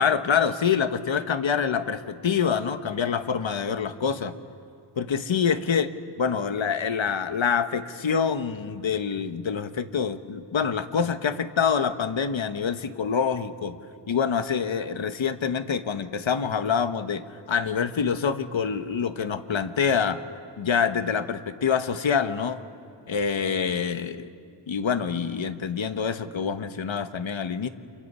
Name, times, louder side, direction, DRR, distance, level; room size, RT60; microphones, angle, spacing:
voice 1, 0.0-4.3 5.0-5.9 6.2-13.8 14.1-20.2 20.6-22.6 23.1-24.3 24.7-27.7, left 6 dB, 75° left, 10 dB, 1.2 m, -26 dB
29.5 x 28.0 x 5.6 m, 2.3 s
wide cardioid pair, 75°, 47 cm